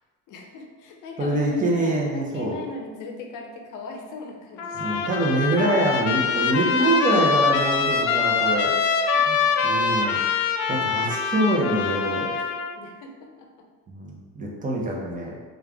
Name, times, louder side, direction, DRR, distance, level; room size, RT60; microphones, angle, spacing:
voice 1, 0.3-5.0 9.1-9.7 12.7-13.7, left 2 dB, 55° left, 2 dB, 0.8 m, -39 dB
voice 2, 1.2-2.6 4.7-10.2 10.7-12.4 13.9-15.3, right 1 dB, 20° right, -2 dB, 0.9 m, -25 dB
Trumpet, 4.6-12.8, left 5 dB, 80° left, 0.5 m, -24 dB
3.3 x 2.5 x 3.4 m, 1.3 s
supercardioid pair, 85°, 38 cm